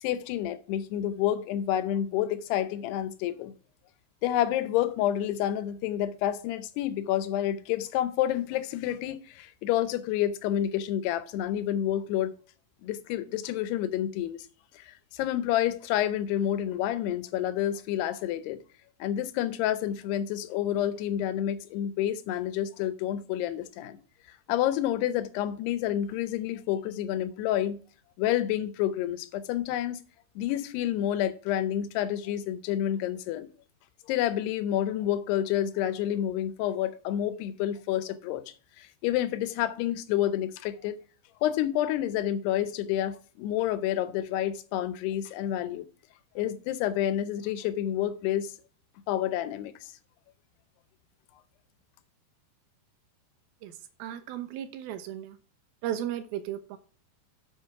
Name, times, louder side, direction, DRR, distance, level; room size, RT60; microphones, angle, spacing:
voice 1, 0.0-3.5 4.2-12.3 12.8-14.5 14.7-18.6 19.0-24.0 24.5-27.8 28.2-30.0 30.4-33.5 34.1-38.4 38.8-41.0 41.4-45.9 46.4-48.5 49.1-49.9, left 11 dB, 80° left, 2.7 m, -29 dB
voice 2, 53.6-55.4 55.8-56.8, right 11 dB, 80° right, 2.4 m, -35 dB
7.7 x 7.2 x 4.7 m
omnidirectional pair, 4.8 m